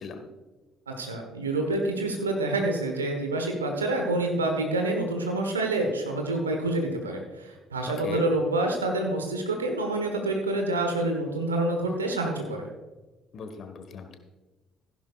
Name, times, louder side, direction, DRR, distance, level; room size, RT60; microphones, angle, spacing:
voice 1, 0.9-12.7, right 2 dB, 90° right, 3 dB, 1.2 m, -27 dB
voice 2, 13.3-14.2, left 6 dB, 50° left, 7 dB, 1.5 m, -36 dB
15.0 x 11.5 x 2.5 m, 1.2 s
figure-of-eight pair, 50°, 0 cm